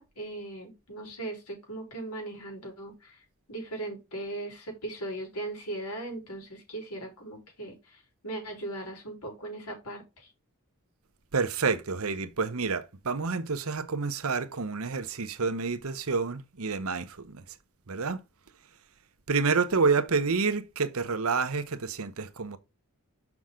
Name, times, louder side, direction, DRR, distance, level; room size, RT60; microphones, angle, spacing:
voice 1, 0.0-3.2 3.5-10.3, right 2 dB, 85° left, 4.1 m, -38 dB
voice 2, 11.3-17.4 17.9-18.2 19.3-22.6, right 4 dB, 75° right, 0.9 m, -28 dB
6.3 x 6.0 x 3.7 m
head